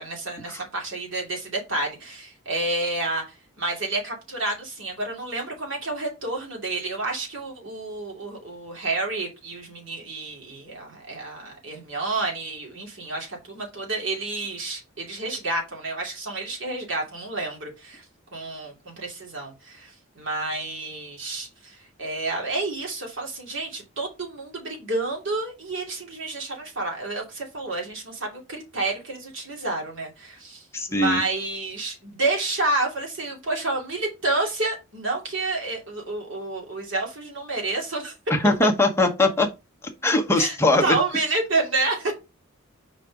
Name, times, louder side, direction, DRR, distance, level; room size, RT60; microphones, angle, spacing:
voice 1, 0.0-3.2 3.6-18.0 18.3-38.1 40.4-40.6 40.8-42.1, right 2 dB, 60° right, 2.5 m, -29 dB
voice 2, 30.7-31.2 38.3-39.5 40.0-40.9, left 2 dB, 10° left, 1.0 m, -21 dB
5.0 x 4.1 x 4.6 m
head